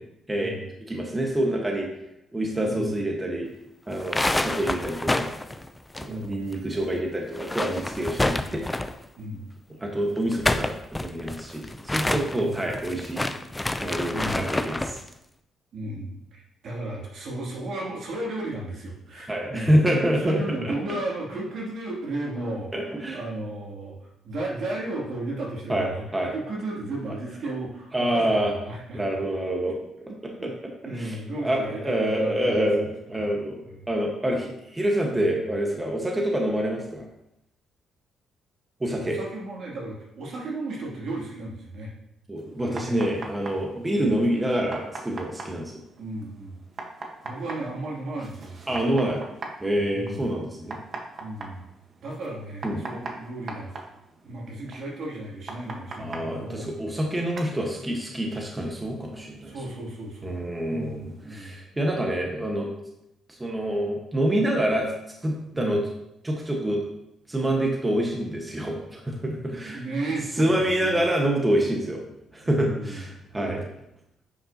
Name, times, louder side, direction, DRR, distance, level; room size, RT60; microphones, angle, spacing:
voice 1, 0.9-1.9 2.3-3.5 3.9-5.3 6.0-8.6 9.8-13.3 13.8-15.0 19.3-20.7 22.7-23.2 25.7-26.3 27.9-28.5 28.9-29.8 30.4-30.5 30.8-31.2 31.4-37.0 38.8-39.2 42.3-45.7 48.7-49.2 49.6-50.8 52.6-52.8 56.0-59.5 60.2-62.7 63.3-64.9 65.2-65.8 66.2-66.8 67.3-69.8 70.4-72.0 72.3-73.6, right 1 dB, 15° right, 0 dB, 1.3 m, -26 dB
sound 1, 3.9-6.6 6.8-6.9 7.3-9.1 10.2-15.0, left 2 dB, 15° left, 0.4 m, -28 dB
voice 2, 6.1-6.4 9.2-9.5 10.3-10.4 12.3-12.6 14.0-14.4 15.7-19.8 20.2-26.0 26.3-29.0 30.4-30.5 30.8-32.9 33.2-33.3 33.7-33.8 35.1-35.4 39.0-41.9 42.6-43.0 43.9-44.1 46.0-46.6 47.2-48.8 49.9-50.2 51.2-51.6 52.0-53.7 54.2-56.7 59.5-61.6 65.5-65.8 69.6-71.0 72.4-73.0 73.3-73.6, right 2 dB, 65° right, -4 dB, 2.6 m, -34 dB
sound 2, 42.4-61.4, right 3 dB, 45° right, 1.2 m, -43 dB
9.9 x 5.5 x 2.8 m, 0.83 s
cardioid pair, 90°, 0 cm